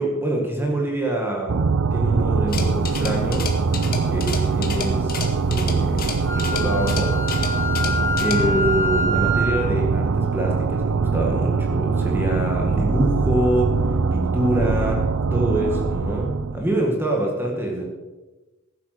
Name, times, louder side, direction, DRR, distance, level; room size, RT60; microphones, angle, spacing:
voice 1, 0.0-1.6 1.9-3.5 3.8-7.2 8.2-17.9, right 1 dB, 10° right, -1 dB, 1.8 m, -25 dB
sound 1, 1.5-16.7, right 4 dB, 80° right, 0.6 m, -22 dB
sound 2, 2.5-8.4, left 5 dB, 45° left, 1.9 m, -33 dB
Wind instrument woodwind instrument, 6.3-9.6, left 1 dB, 20° left, 3.5 m, -26 dB
15.0 x 8.3 x 6.6 m, 1.1 s
head